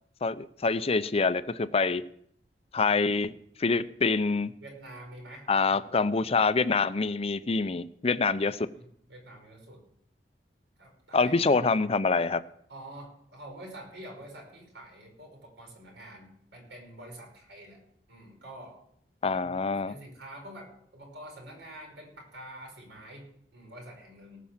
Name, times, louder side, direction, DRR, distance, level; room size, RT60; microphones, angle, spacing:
voice 1, 0.2-2.0 2.7-3.3 3.6-4.5 5.5-8.7 11.1-12.4 19.2-19.9, left 4 dB, 35° left, 14 dB, 0.6 m, -26 dB
voice 2, 4.6-6.1 8.7-9.8 10.8-11.7 12.7-17.8 18.1-18.8 19.4-19.6 19.9-24.4, right 1 dB, 80° right, 1 dB, 5.4 m, -47 dB
18.5 x 6.2 x 7.3 m, 0.69 s
head